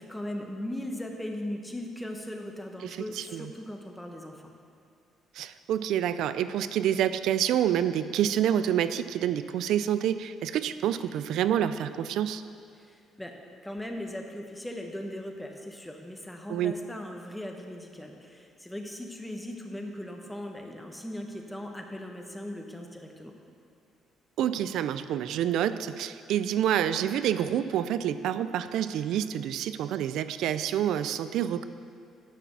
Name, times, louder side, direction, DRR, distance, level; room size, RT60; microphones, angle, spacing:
voice 1, 0.0-4.5 12.8-13.3 13.6-23.3, left 1 dB, 5° left, 2 dB, 0.9 m, -38 dB
voice 2, 2.8-3.5 5.3-12.4 16.5-16.7 24.4-31.6, right 10 dB, 70° right, 13 dB, 0.4 m, -28 dB
10.0 x 5.9 x 6.9 m, 2.3 s
cardioid pair, 155°, 0 cm